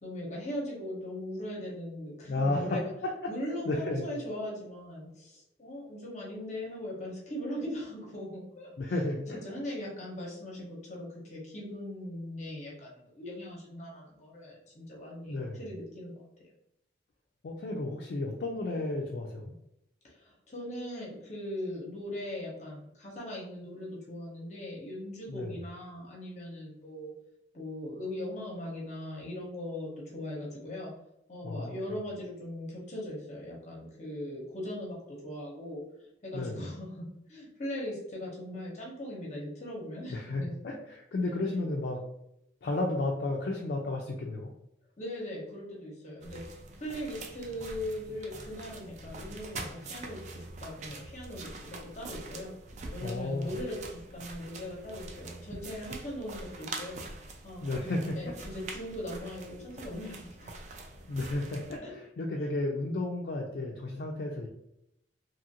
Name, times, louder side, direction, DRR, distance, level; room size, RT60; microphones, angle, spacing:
voice 1, 0.0-2.9 3.3-16.1 20.0-27.1 27.5-30.9 31.3-35.8 36.2-40.5 45.0-51.7 51.9-52.5 52.9-57.0 57.4-60.6 61.8-62.0 62.4-62.5, left 1 dB, 40° left, -3 dB, 0.7 m, -40 dB
voice 2, 2.3-3.3 3.6-4.0 8.8-9.4 15.3-15.6 17.4-19.5 25.3-25.5 31.4-31.9 36.3-36.6 40.1-42.0 42.6-44.5 53.0-53.5 57.6-58.2 61.1-64.5, left 2 dB, 55° left, -1 dB, 0.3 m, -33 dB
sound 1, 46.2-61.8, right 2 dB, 40° right, 0.3 m, -44 dB
2.8 x 2.4 x 2.7 m, 0.81 s
head